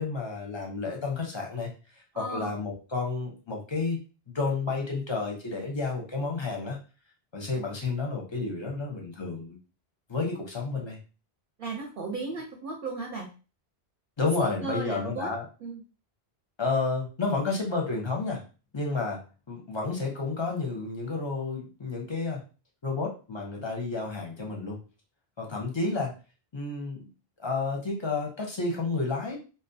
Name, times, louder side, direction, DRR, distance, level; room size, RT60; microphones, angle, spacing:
voice 1, 0.0-1.7 2.2-4.0 4.3-6.8 7.3-9.6 10.1-11.0 14.2-15.5 16.6-18.4 18.7-19.2 19.5-22.4 22.8-24.8 25.4-26.1 26.5-27.1 27.4-29.4, left 3 dB, 35° left, 0 dB, 0.5 m, -31 dB
voice 2, 2.1-2.5 11.6-13.3 14.4-15.3 15.6-15.8, right 3 dB, 60° right, 0 dB, 0.7 m, -35 dB
2.6 x 2.1 x 2.6 m, 0.34 s
omnidirectional pair, 1.0 m